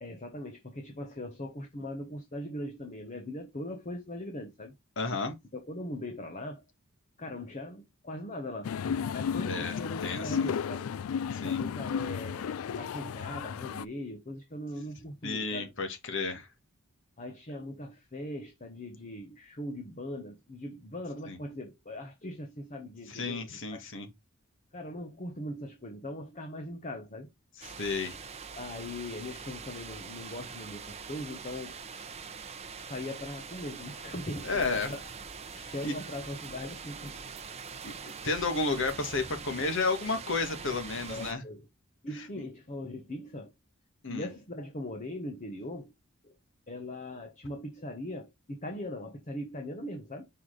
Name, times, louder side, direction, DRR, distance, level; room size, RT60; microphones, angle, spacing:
voice 1, 0.0-4.7 5.5-6.6 7.2-10.9 11.4-15.7 17.2-23.9 24.7-27.3 28.5-31.7 32.9-35.0 35.7-37.2 41.1-41.7 42.0-43.5 44.1-45.9 46.2-46.4 46.7-50.3, left 1 dB, 35° left, 1.0 m, -40 dB
voice 2, 5.0-5.3 9.4-9.7 10.0-10.5 11.3-11.6 15.2-16.5 21.3-21.4 23.1-24.1 27.8-28.2 34.4-34.9 35.6-35.9 37.8-37.9 38.2-41.4 42.2-42.3 44.0-44.3, left 3 dB, 60° left, 1.7 m, -32 dB
sound 1, 8.6-13.8, left 7 dB, 80° left, 0.4 m, -33 dB
sound 2, 27.6-41.3, right 5 dB, 30° right, 0.8 m, -43 dB
5.6 x 4.9 x 3.9 m
head